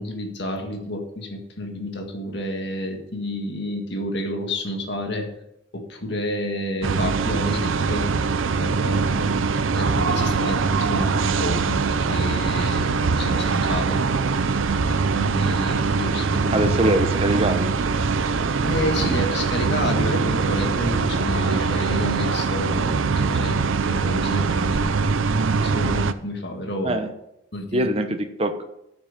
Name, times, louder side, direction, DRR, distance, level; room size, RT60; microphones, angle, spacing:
voice 1, 0.0-5.3 5.7-8.1 8.6-9.5 9.7-14.0 14.9-16.7 18.6-23.6 23.8-27.0 27.5-27.9, left 1 dB, 60° left, 3 dB, 1.8 m, -30 dB
sound 1, 6.8-26.1, right 4 dB, 85° right, 0.6 m, -22 dB
voice 2, 16.5-17.7 26.8-27.1 27.7-28.6, right 1 dB, 30° right, 7 dB, 0.9 m, -23 dB
13.0 x 6.1 x 5.2 m, 0.80 s
head